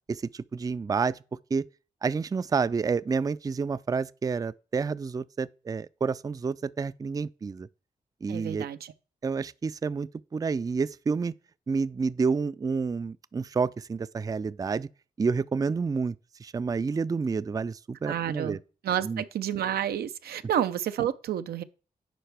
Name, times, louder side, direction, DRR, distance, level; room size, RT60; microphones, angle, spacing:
voice 1, 0.1-1.2 1.5-1.6 2.0-7.7 8.2-8.7 9.2-11.3 11.7-14.9 15.2-18.6 19.0-19.2, right 5 dB, 25° right, 0.3 m, -29 dB
voice 2, 8.3-8.9 18.0-18.6 18.8-21.6, right 10 dB, 85° right, 0.5 m, -30 dB
10.0 x 4.5 x 3.4 m
supercardioid pair, 50°, 16 cm